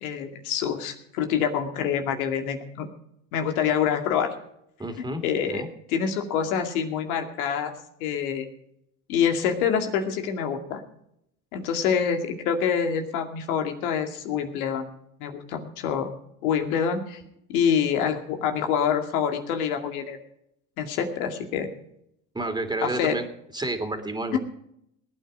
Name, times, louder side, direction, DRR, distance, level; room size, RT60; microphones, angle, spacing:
voice 1, 0.0-2.9 3.3-4.3 5.2-5.6 5.9-7.7 8.0-8.5 9.1-10.8 11.5-14.8 15.2-16.1 16.4-17.2 17.5-20.2 20.8-21.7 22.8-23.1 24.3-24.4, left 7 dB, 75° left, 5 dB, 2.4 m, -26 dB
voice 2, 4.8-5.2 5.5-5.7 22.3-23.2 23.5-24.4, right 2 dB, 10° right, 7 dB, 2.7 m, -30 dB
20.0 x 9.2 x 5.0 m, 0.74 s
hypercardioid pair, 80°, 43 cm